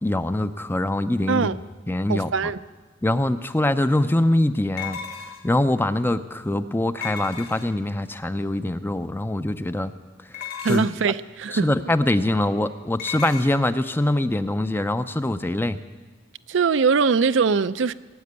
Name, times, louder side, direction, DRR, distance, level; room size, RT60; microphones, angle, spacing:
voice 1, 0.0-2.3 3.0-5.0 5.4-9.9 10.3-10.9 11.5-15.8, left 1 dB, 10° left, 0.5 m, -23 dB
voice 2, 2.1-2.6 10.6-11.7 16.5-17.9, right 5 dB, 70° right, 0.5 m, -21 dB
sound 1, 3.2-3.3 4.8-5.6 7.0-7.9 10.3-11.1 13.0-13.5, left 8 dB, 55° left, 1.8 m, -35 dB
18.5 x 7.7 x 9.6 m
head